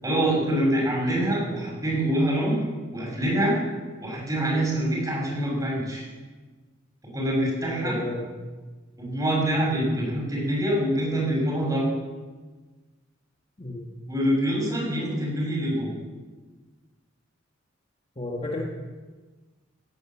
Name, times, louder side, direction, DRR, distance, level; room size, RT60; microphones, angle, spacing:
voice 1, 0.0-3.6 4.0-6.0 7.1-8.0 9.0-11.9 14.1-15.9, right 1 dB, 20° right, -3 dB, 6.2 m, -25 dB
voice 2, 7.8-8.2 13.6-13.9 18.2-18.6, left 2 dB, 30° left, -1 dB, 1.8 m, -31 dB
17.0 x 10.5 x 7.3 m, 1.3 s
head